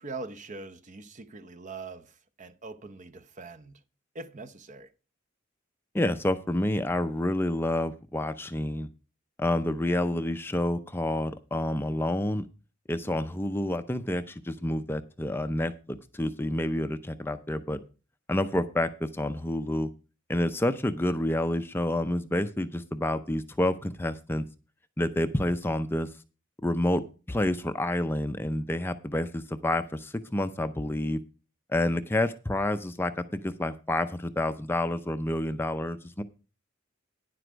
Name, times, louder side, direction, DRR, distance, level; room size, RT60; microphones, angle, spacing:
voice 1, 0.0-2.1 2.4-3.8 4.1-4.9, right 3 dB, 40° right, 0.8 m, -42 dB
voice 2, 5.9-8.9 9.4-12.5 12.9-17.8 18.3-19.9 20.3-24.4 25.0-26.1 26.6-27.0 27.3-31.2 31.7-36.2, left 1 dB, 10° left, 0.5 m, -28 dB
10.5 x 7.8 x 5.1 m
head